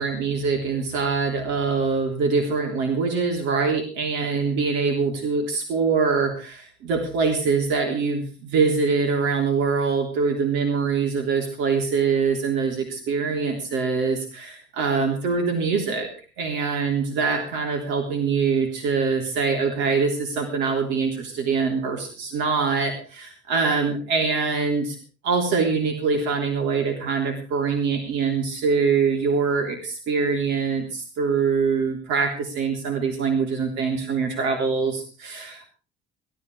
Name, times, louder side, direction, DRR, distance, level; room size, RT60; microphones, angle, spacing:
voice 1, 0.0-16.1 16.4-25.0 25.2-35.7, right 5 dB, 70° right, 3 dB, 3.4 m, -24 dB
17.0 x 13.0 x 4.8 m, 0.37 s
cardioid pair, 145°, 19 cm